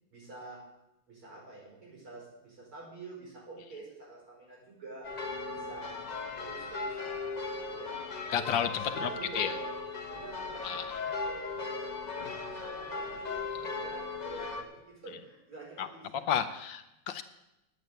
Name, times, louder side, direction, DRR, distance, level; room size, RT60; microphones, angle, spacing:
voice 1, 0.1-0.6 1.1-5.1 5.5-6.0 6.4-8.6 8.8-9.6 10.0-16.3, right 3 dB, 85° right, -4 dB, 6.3 m, -48 dB
sound 1, 5.0-14.6, left 3 dB, 30° left, 0.8 m, -37 dB
voice 2, 8.3-8.7 9.0-9.1 9.3-9.5 10.6-10.8 15.8-15.9 16.3-17.2, left 9 dB, 70° left, 9 dB, 1.3 m, -31 dB
10.5 x 8.4 x 7.8 m, 0.89 s
omnidirectional pair, 2.3 m